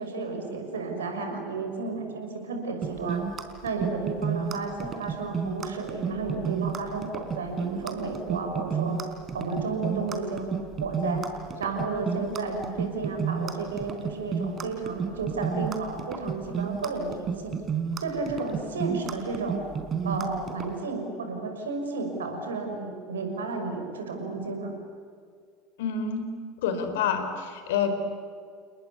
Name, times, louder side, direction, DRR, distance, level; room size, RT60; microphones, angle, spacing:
voice 1, 0.0-3.2 3.6-9.0 9.3-10.5 10.8-11.3 11.6-17.6 18.0-19.6 20.0-24.7, right 3 dB, 75° right, 4 dB, 6.1 m, -32 dB
sound 1, 2.8-20.7, right 7 dB, 30° right, 3.8 m, -31 dB
voice 2, 25.8-26.3 26.6-28.0, left 6 dB, 65° left, 8 dB, 4.5 m, -28 dB
30.0 x 20.0 x 9.8 m, 2.2 s
figure-of-eight pair, 75°, 0 cm